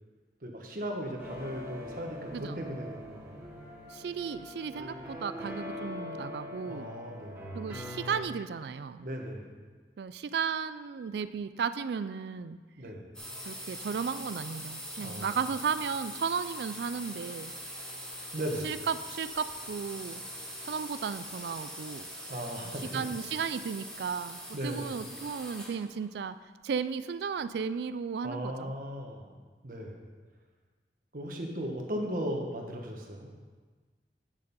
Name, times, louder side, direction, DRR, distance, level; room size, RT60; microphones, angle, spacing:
voice 1, 0.4-3.4 6.7-7.4 9.0-9.5 12.8-13.1 15.0-15.4 18.3-18.7 22.3-23.1 24.5-25.0 28.2-29.3 29.6-30.0 31.1-33.3, equal, 50° right, 1 dB, 1.3 m, -37 dB
sound 1, 1.2-8.2, left 1 dB, 15° right, 2.2 m, -42 dB
voice 2, 2.3-2.6 3.9-6.9 7.5-9.1 10.0-12.6 13.5-17.5 18.6-20.2 20.6-22.1 22.6-26.4 26.6-28.7, right 6 dB, 70° right, 13 dB, 0.3 m, -34 dB
sound 2, 13.1-25.8, equal, 5° left, 2.3 m, -42 dB
9.1 x 6.7 x 5.3 m, 1.4 s
head